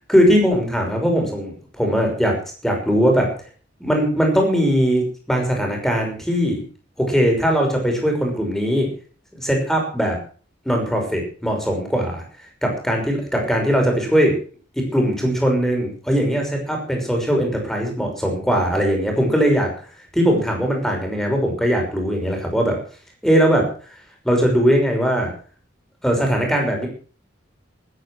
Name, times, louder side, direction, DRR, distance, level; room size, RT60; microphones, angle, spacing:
voice 1, 0.1-2.4 2.6-3.3 3.8-6.6 7.0-8.9 9.3-10.2 10.7-12.2 12.6-14.4 14.7-19.7 20.1-22.8 23.2-23.7 24.2-25.3 26.0-26.9, equal, ahead, 2 dB, 6.0 m, -20 dB
20.5 x 9.8 x 6.3 m, 0.42 s
head